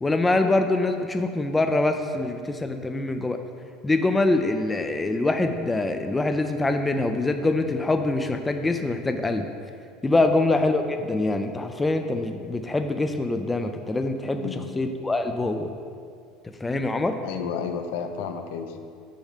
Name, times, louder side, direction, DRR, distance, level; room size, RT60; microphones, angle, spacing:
voice 1, 0.0-3.4 3.8-9.5 10.0-14.5 14.8-15.7 16.6-17.2, left 2 dB, 10° left, 6 dB, 0.3 m, -24 dB
voice 2, 14.4-14.7 17.2-18.8, left 6 dB, 75° left, 6 dB, 0.6 m, -32 dB
6.3 x 5.4 x 4.9 m, 2.3 s
cardioid pair, 150°, 0 cm